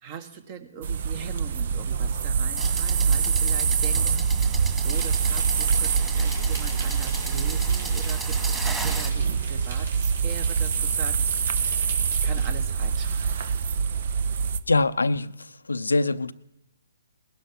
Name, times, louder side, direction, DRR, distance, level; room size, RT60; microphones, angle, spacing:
voice 1, 0.0-13.6, right 7 dB, 35° right, 10 dB, 1.7 m, -41 dB
sound 1, 0.8-14.6, right 6 dB, 55° right, 0.9 m, -25 dB
sound 2, 2.6-9.1, right 3 dB, 10° right, 2.3 m, -36 dB
Insect, 4.9-12.5, right 3 dB, 70° right, 5.7 m, -43 dB
voice 2, 14.7-15.3 15.7-16.3, left 3 dB, 85° left, 13 dB, 0.6 m, -23 dB
20.0 x 11.5 x 6.0 m, 0.87 s
figure-of-eight pair, 135°, 0 cm